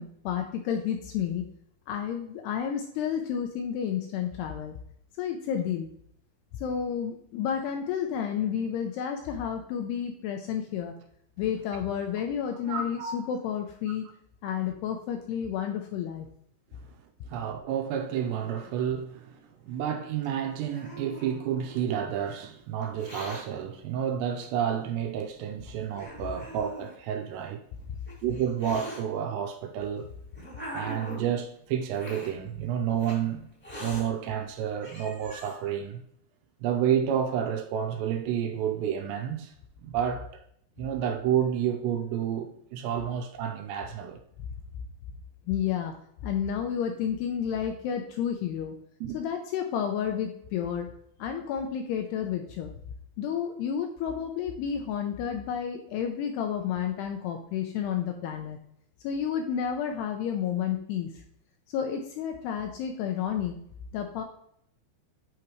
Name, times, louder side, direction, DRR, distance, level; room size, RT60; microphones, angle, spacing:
voice 1, 0.0-1.4 1.9-4.8 5.2-5.9 6.5-10.9 11.4-14.1 14.4-16.3 45.5-45.9 46.2-48.7 49.1-50.9 51.2-52.7 53.2-58.6 59.0-61.1 61.7-63.6 63.9-64.2, left 8 dB, 80° left, 2.4 m, -31 dB
voice 2, 12.6-13.2 17.3-27.6 28.2-30.1 30.7-33.5 33.8-36.0 36.6-39.5 39.8-40.4 40.8-44.2 49.0-49.2, right 9 dB, 85° right, 2.7 m, -30 dB
Hiss, 20.2-21.9 22.8-23.4 24.4-24.5 25.3-25.4 25.9-26.9 27.8-29.0 29.8-31.4 31.9-32.3 33.0-33.2 33.6-34.0 34.5-34.6 34.8-35.5, right 1 dB, 10° left, 0.6 m, -41 dB
8.5 x 4.9 x 3.0 m
omnidirectional pair, 5.2 m